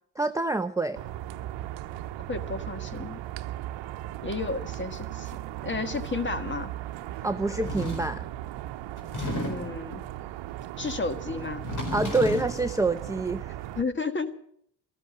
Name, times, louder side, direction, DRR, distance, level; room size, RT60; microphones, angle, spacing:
voice 1, 0.2-1.0 7.2-8.3 11.9-13.6, right 2 dB, 5° right, 7 dB, 0.7 m, -27 dB
sound 1, 0.9-13.8, right 13 dB, 75° right, 0.9 m, -37 dB
voice 2, 2.3-3.2 4.2-5.3 5.6-6.7 9.4-10.0 10.8-11.6 13.7-14.4, left 4 dB, 25° left, 10 dB, 1.7 m, -32 dB
sound 2, 7.6-8.2 9.0-9.8 11.5-12.6, left 1 dB, 40° left, 4.5 m, -32 dB
13.5 x 13.5 x 7.6 m, 0.67 s
cardioid pair, 85°, 44 cm